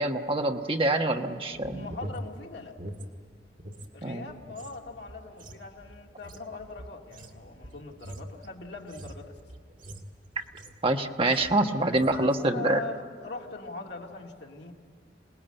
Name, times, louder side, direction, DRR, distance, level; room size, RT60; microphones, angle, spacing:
voice 1, 0.0-1.9 4.0-4.3 10.8-12.8, right 2 dB, 30° right, 4 dB, 1.2 m, -26 dB
voice 2, 1.5-2.8 3.9-9.4 12.1-14.7, left 3 dB, 70° left, 0 dB, 2.4 m, -41 dB
sound 1, 1.5-3.9 4.2-10.9 11.2-11.6 11.9-12.2, right 1 dB, 50° right, 2.0 m, -44 dB
27.0 x 19.5 x 9.0 m, 2.2 s
head